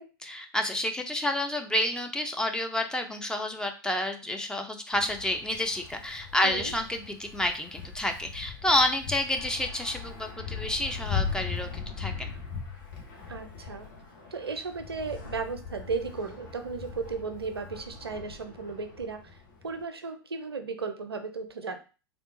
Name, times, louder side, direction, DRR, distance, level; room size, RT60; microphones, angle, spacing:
voice 1, 0.2-12.3, left 1 dB, 5° left, 5 dB, 0.4 m, -29 dB
Wind, 4.9-19.8, left 6 dB, 55° left, 1.1 m, -39 dB
voice 2, 6.4-6.7 13.3-13.9 14.3-19.4 19.6-21.8, right 4 dB, 80° right, 8 dB, 0.5 m, -35 dB
3.5 x 2.3 x 2.6 m, 0.33 s
figure-of-eight pair, 90°, 13 cm